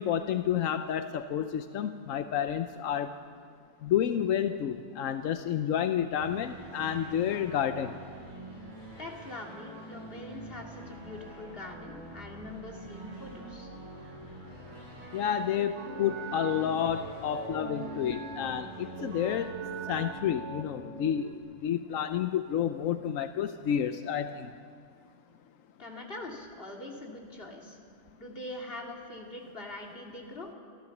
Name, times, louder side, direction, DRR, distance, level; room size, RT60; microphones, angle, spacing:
voice 1, 0.0-3.1 3.8-7.9 15.1-19.5 19.9-21.3 21.6-24.5, left 9 dB, 90° left, 9 dB, 1.1 m, -30 dB
sound 1, 6.2-20.2, right 2 dB, 35° right, 6.5 m, -46 dB
voice 2, 9.0-13.7 25.8-27.8 28.2-30.5, left 2 dB, 45° left, 0 dB, 2.8 m, -43 dB
sound 2, 15.8-21.4, right 3 dB, 65° right, 1.7 m, -41 dB
26.0 x 14.0 x 7.1 m, 2.1 s
omnidirectional pair, 1.3 m